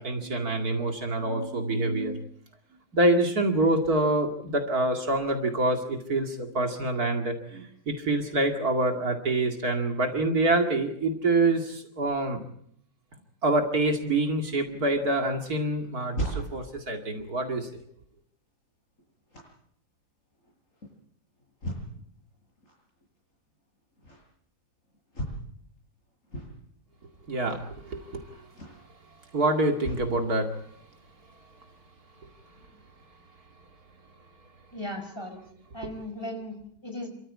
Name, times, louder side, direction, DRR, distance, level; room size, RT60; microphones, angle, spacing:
voice 1, 0.0-2.2 2.9-12.4 13.4-17.8 27.3-28.5 29.3-30.5, right 2 dB, 65° right, 4 dB, 2.8 m, -26 dB
sound 1, 15.8-30.1 30.7-30.8, right 1 dB, 50° left, 8.0 m, -40 dB
voice 2, 34.7-35.4 35.7-37.1, left 1 dB, 15° left, 4 dB, 4.9 m, -37 dB
28.0 x 14.0 x 8.6 m, 0.69 s
omnidirectional pair, 1.8 m